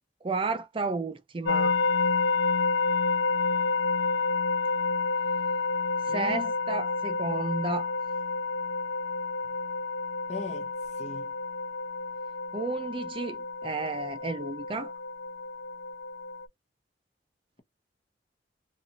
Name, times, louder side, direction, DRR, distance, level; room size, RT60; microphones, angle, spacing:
voice 1, 0.2-1.8 6.0-7.9 12.5-14.9, right 3 dB, 30° right, 0.4 m, -32 dB
sound 1, 1.5-16.5, left 4 dB, 80° left, 0.4 m, -29 dB
voice 2, 6.1-6.5 10.3-10.7 11.0-11.3, left 2 dB, 40° left, 0.8 m, -38 dB
2.6 x 2.4 x 2.7 m
head